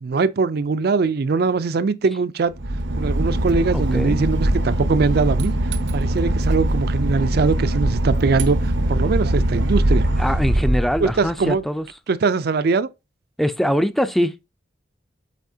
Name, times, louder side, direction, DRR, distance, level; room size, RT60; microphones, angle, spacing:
voice 1, 0.0-2.5 3.0-5.5 5.9-10.0 11.0-11.6 12.1-12.9, right 4 dB, 60° right, 0.4 m, -21 dB
Boat Water vehicle / Engine, 2.5-11.5, right 1 dB, 90° right, 0.9 m, -21 dB
voice 2, 3.7-4.2 10.2-11.9 13.4-14.3, equal, ahead, 0.4 m, -22 dB
8.2 x 4.2 x 2.7 m
head